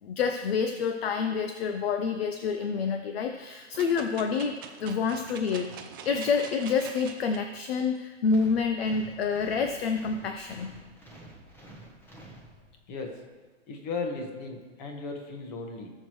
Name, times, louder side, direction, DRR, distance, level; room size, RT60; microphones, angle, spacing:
voice 1, 0.0-5.7 6.0-10.7, left 5 dB, 55° left, 6 dB, 0.8 m, -28 dB
sound 1, 3.7-7.4 8.0-8.1, right 7 dB, 20° right, 0.4 m, -44 dB
sound 2, 8.2-13.0, right 1 dB, 5° left, 1.0 m, -50 dB
voice 2, 12.9-13.2 13.7-15.9, left 3 dB, 35° left, 3 dB, 1.7 m, -36 dB
18.0 x 6.6 x 3.1 m, 1.4 s
hypercardioid pair, 150°, 37 cm